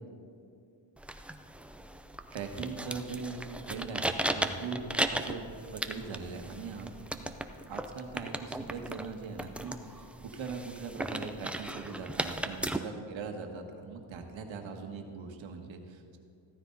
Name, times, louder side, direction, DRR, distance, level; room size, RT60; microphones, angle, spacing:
sound 1, 1.0-12.8, right 1 dB, 5° right, 0.4 m, -36 dB
voice 1, 2.3-6.9 7.7-16.2, right 5 dB, 70° right, 4 dB, 1.6 m, -41 dB
14.5 x 13.5 x 4.0 m, 2.4 s
cardioid pair, 120°, 47 cm